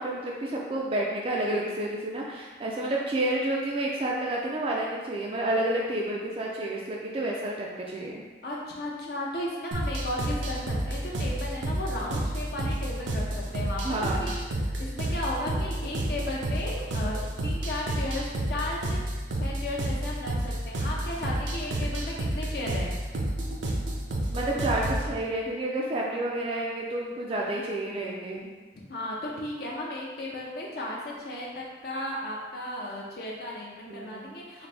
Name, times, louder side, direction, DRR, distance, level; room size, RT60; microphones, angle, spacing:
voice 1, 0.0-8.2 13.8-14.3 24.3-28.5 33.9-34.2, right 1 dB, 30° right, -3 dB, 0.3 m, -30 dB
voice 2, 8.4-13.2 13.5-14.4 14.8-17.2 17.4-19.0 19.4-22.9 28.9-34.7, left 1 dB, 55° left, -4 dB, 0.5 m, -35 dB
sound 1, 9.7-25.1, right 1 dB, 90° right, 0.6 m, -30 dB
4.0 x 2.5 x 3.3 m, 1.4 s
head